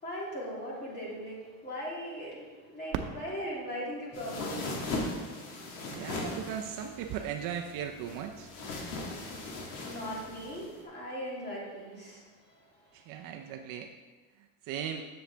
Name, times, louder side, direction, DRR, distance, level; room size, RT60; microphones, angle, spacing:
voice 1, 0.0-4.8 9.8-12.9, equal, 25° left, -5 dB, 2.6 m, -39 dB
Fireworks, 2.9-5.7 6.4-6.5 7.1-7.6 9.5-9.6, right 7 dB, 80° right, 0.8 m, -42 dB
sound 1, 4.1-10.8, left 2 dB, 60° left, 1.8 m, -39 dB
voice 2, 5.9-8.5 12.9-13.9 14.7-15.0, right 8 dB, 50° right, 4 dB, 0.6 m, -37 dB
7.7 x 7.1 x 3.4 m, 1.3 s
cardioid pair, 145°, 42 cm